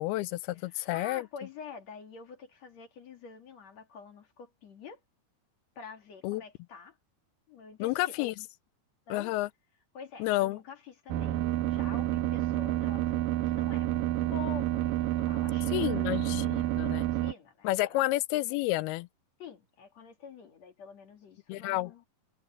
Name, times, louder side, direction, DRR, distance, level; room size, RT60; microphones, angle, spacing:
voice 1, 0.0-1.3 6.2-6.4 7.8-8.3 9.1-9.5 10.2-10.6 15.7-17.1 17.6-19.1 21.5-21.9, left 18 dB, 90° left, 2.6 m, -30 dB
voice 2, 0.5-5.0 5.8-7.0 7.5-8.2 9.1-9.4 9.9-16.7 17.1-18.0 19.4-22.0, left 5 dB, 50° left, 3.0 m, -47 dB
sound 1, 11.1-17.3, right 14 dB, 75° right, 2.4 m, -29 dB
omnidirectional pair, 4.5 m